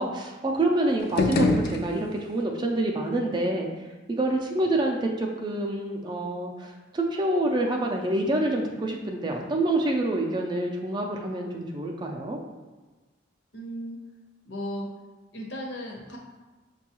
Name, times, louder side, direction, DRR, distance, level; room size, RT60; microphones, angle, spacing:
voice 1, 0.0-3.7 4.2-12.4, right 1 dB, 25° right, 0 dB, 0.3 m, -27 dB
sound 1, 1.0-2.4, left 3 dB, 50° left, 0.4 m, -26 dB
voice 2, 13.5-14.0 14.4-14.9 15.3-16.2, equal, 70° left, 0 dB, 0.8 m, -35 dB
6.1 x 2.3 x 2.9 m, 1.2 s
head